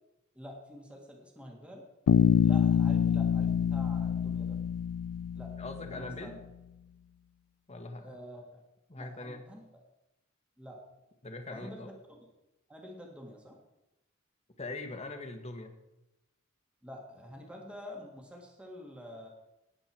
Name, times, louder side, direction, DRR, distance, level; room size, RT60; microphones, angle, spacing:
voice 1, 0.3-1.8 2.4-4.6 5.3-6.3 7.9-8.6 9.0-9.6 10.6-10.8 11.5-12.3 12.7-13.6 16.8-19.3, equal, 5° right, 0 dB, 2.0 m, -47 dB
Bass guitar, 2.1-6.1, left 7 dB, 80° left, 0.3 m, -26 dB
voice 2, 5.6-6.4 7.7-8.2 8.9-9.4 11.2-11.9 14.6-15.8, left 2 dB, 30° left, 5 dB, 1.6 m, -41 dB
19.0 x 8.0 x 4.5 m, 0.93 s
head